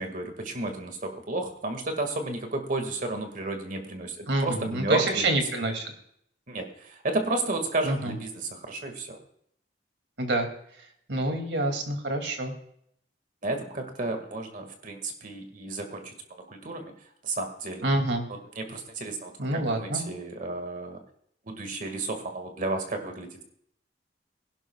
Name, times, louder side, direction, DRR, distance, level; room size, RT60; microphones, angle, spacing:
voice 1, 0.0-5.4 6.5-9.2 13.4-16.1 16.5-16.9 17.2-17.8 18.3-21.0 21.5-23.4, right 2 dB, 50° right, 5 dB, 1.9 m, -32 dB
voice 2, 4.3-5.8 7.8-8.1 10.2-10.5 11.1-12.5 17.8-18.3 19.4-20.0, right 2 dB, 80° right, 4 dB, 2.5 m, -27 dB
21.5 x 11.5 x 2.3 m, 0.69 s
head